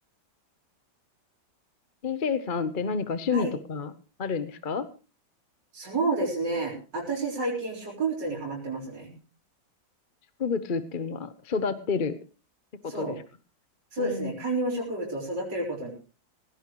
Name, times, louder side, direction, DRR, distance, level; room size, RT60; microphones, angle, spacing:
voice 1, 2.0-3.9 4.2-4.9 10.4-12.2 12.8-13.2 14.0-14.3, left 5 dB, 35° left, 12 dB, 0.8 m, -29 dB
voice 2, 5.7-9.1 12.9-13.2 13.9-15.9, right 2 dB, 65° right, -4 dB, 4.7 m, -30 dB
18.0 x 16.5 x 3.1 m, 0.34 s
omnidirectional pair, 2.1 m